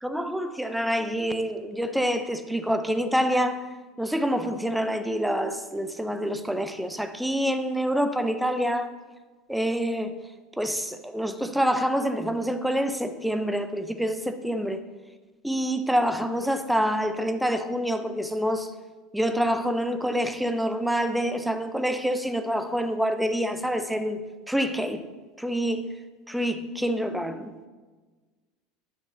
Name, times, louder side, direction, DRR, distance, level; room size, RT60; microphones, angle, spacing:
voice 1, 0.0-3.7 4.0-8.9 9.5-10.1 10.6-14.8 15.4-18.7 19.1-25.0 25.4-26.0 26.3-27.5, equal, 5° right, 0.7 m, -27 dB
10.5 x 6.2 x 3.9 m
hypercardioid pair, 80°, 0 cm